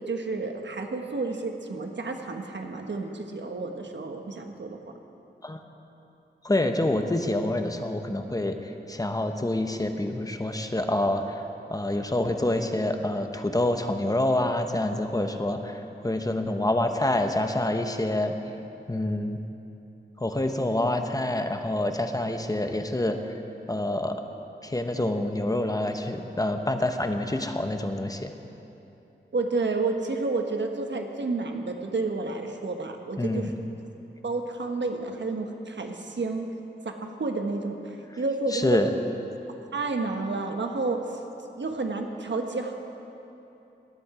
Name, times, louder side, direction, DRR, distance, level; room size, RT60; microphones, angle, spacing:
voice 1, 0.1-4.8 29.3-33.5 34.2-36.5 37.0-38.8 39.7-41.1 41.6-42.7, right 3 dB, 70° right, 3 dB, 1.2 m, -30 dB
voice 2, 6.4-11.4 11.7-18.3 18.9-19.4 20.2-23.3 23.7-24.2 24.6-28.3 33.2-33.5 38.5-38.9, left 1 dB, 20° left, 5 dB, 0.9 m, -27 dB
17.5 x 11.0 x 4.9 m, 2.9 s
wide cardioid pair, 100°, 19 cm